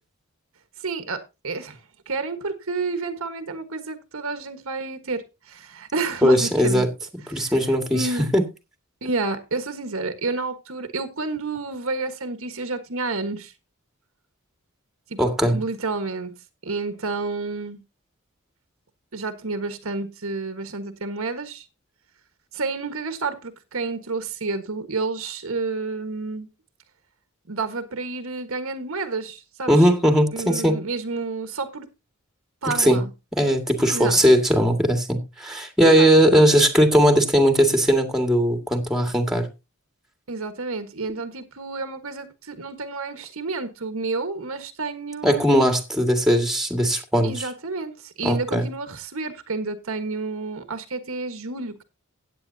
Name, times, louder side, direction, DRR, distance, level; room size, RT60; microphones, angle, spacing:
voice 1, 0.8-1.8 2.1-6.9 7.3-7.5 7.9-8.3 9.0-13.5 15.1-15.2 15.5-16.3 16.6-17.8 19.1-21.6 22.5-26.5 27.5-29.7 30.3-31.9 32.6-33.1 33.9-34.2 35.8-36.1 40.3-45.5 47.2-51.8, right 3 dB, 70° right, 1.4 m, -30 dB
voice 2, 6.2-6.9 7.3-8.4 15.2-15.6 29.7-30.8 32.6-33.0 33.3-39.5 45.2-47.5 48.2-48.7, equal, ahead, 2.0 m, -19 dB
16.0 x 9.1 x 2.8 m
head